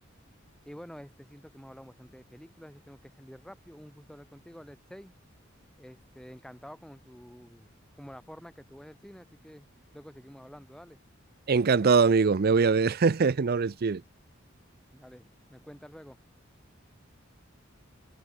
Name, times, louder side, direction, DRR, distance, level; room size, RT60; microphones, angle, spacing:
voice 1, 0.7-5.1 5.8-7.7 8.0-9.7 9.9-11.0 14.9-16.2, equal, 5° left, 2.7 m, -49 dB
voice 2, 11.5-14.0, right 5 dB, 50° right, 0.5 m, -22 dB
head